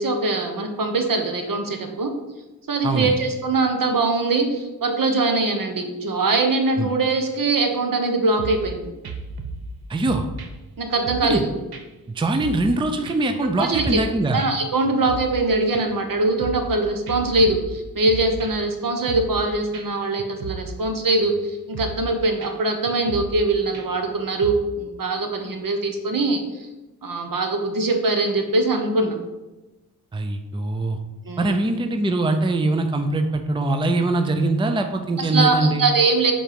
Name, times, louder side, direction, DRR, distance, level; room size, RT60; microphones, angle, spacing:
voice 1, 0.0-2.1 2.7-8.9 10.8-11.5 13.6-14.0 14.3-26.4 27.0-29.1 31.3-31.5 35.2-36.3, right 3 dB, 65° right, 4 dB, 1.2 m, -22 dB
voice 2, 2.8-3.2 6.8-6.9 9.9-10.3 11.2-11.4 12.2-14.4 30.1-31.0 31.4-35.8, right 2 dB, 15° right, 6 dB, 0.5 m, -22 dB
sound 1, 8.4-8.7 9.0-9.7 10.0-11.4 11.7-11.8 12.2-12.8 13.0-14.1 14.4-14.5 14.8-15.4 15.7-16.8 17.1-18.7 19.1-19.4 19.7-19.8 20.2-20.8 21.1-21.4 21.7-22.1 22.4-22.5 22.9-23.4 23.7-24.1 24.4-24.6, right 3 dB, 90° right, 0.9 m, -35 dB
7.5 x 4.4 x 5.2 m, 1.1 s
wide cardioid pair, 145°, 36 cm